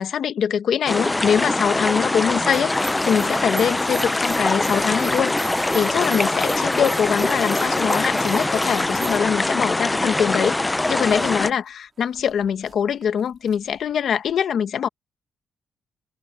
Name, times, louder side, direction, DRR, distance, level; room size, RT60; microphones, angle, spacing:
voice 1, 0.0-10.6 10.9-14.9, left 8 dB, 65° left, 1.0 m, -23 dB
sound 1, 0.9-11.5, left 2 dB, 15° left, 0.5 m, -23 dB
sound 2, 2.5-9.2, right 9 dB, 75° right, 6.1 m, -40 dB
sound 3, 3.6-9.7 10.0-14.4, right 5 dB, 35° right, 3.3 m, -50 dB
cardioid pair, 130°, 0 cm